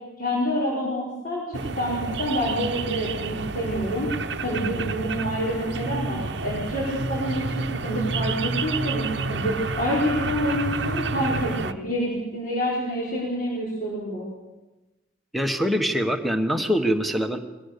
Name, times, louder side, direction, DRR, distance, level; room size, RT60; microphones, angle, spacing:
voice 1, 0.2-14.3, equal, 45° left, -6 dB, 4.6 m, -27 dB
sound 1, 1.5-11.7, right 4 dB, 60° right, 0.8 m, -29 dB
voice 2, 15.3-17.4, equal, ahead, 6 dB, 1.2 m, -23 dB
22.5 x 17.5 x 6.8 m, 1.1 s
head